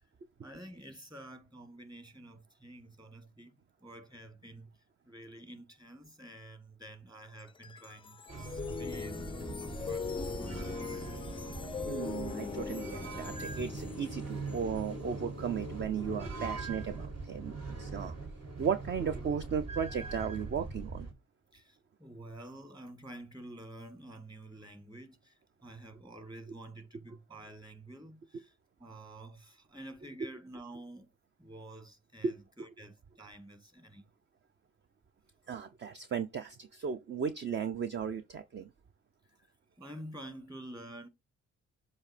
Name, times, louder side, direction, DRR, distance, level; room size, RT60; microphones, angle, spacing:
voice 1, 0.4-3.5 3.8-4.7 5.1-11.1 21.5-28.5 28.8-31.1 31.4-34.0 39.4-39.5 39.8-41.1, right 1 dB, 15° right, 1.8 m, -49 dB
sound 1, 7.4-16.6, left 5 dB, 20° left, 0.4 m, -41 dB
sound 2, 8.3-21.1, right 3 dB, 55° right, 3.2 m, -41 dB
voice 2, 11.8-18.2 18.6-21.1 32.2-32.4 35.5-38.7, right 7 dB, 35° right, 0.6 m, -35 dB
7.1 x 2.8 x 4.9 m
cardioid pair, 90°, 30 cm